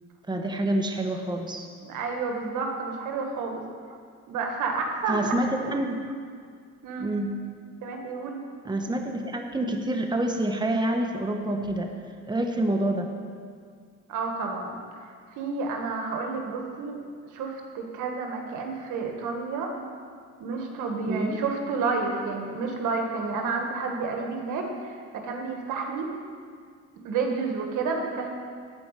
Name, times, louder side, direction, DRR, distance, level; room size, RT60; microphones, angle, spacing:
voice 1, 0.3-1.7 5.1-6.0 7.0-7.4 8.6-11.9 12.3-13.1 21.0-21.4, right 1 dB, 15° right, 3 dB, 1.2 m, -27 dB
voice 2, 1.8-3.6 4.3-5.2 6.8-7.1 7.8-8.4 14.1-14.8 15.0-16.9 17.3-19.7 20.4-26.1 27.0-28.3, right 4 dB, 85° right, 2 dB, 1.8 m, -30 dB
13.5 x 4.9 x 9.0 m, 2.1 s
cardioid pair, 90°, 30 cm